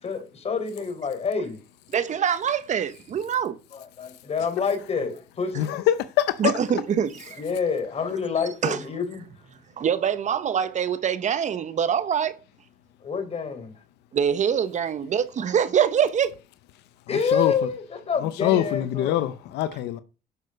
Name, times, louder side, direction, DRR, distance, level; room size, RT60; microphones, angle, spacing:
voice 1, 0.0-1.6 3.7-5.8 7.4-9.3 13.0-13.7 17.1-19.2, left 5 dB, 40° left, 4.1 m, -28 dB
voice 2, 1.9-3.6 6.4-7.4 8.6-8.8 9.8-12.3 14.1-16.3, right 8 dB, 45° right, 1.0 m, -24 dB
voice 3, 5.6-6.4 17.3-17.5 18.2-20.0, left 13 dB, 85° left, 0.8 m, -24 dB
11.5 x 6.5 x 6.5 m
cardioid pair, 110°, 17 cm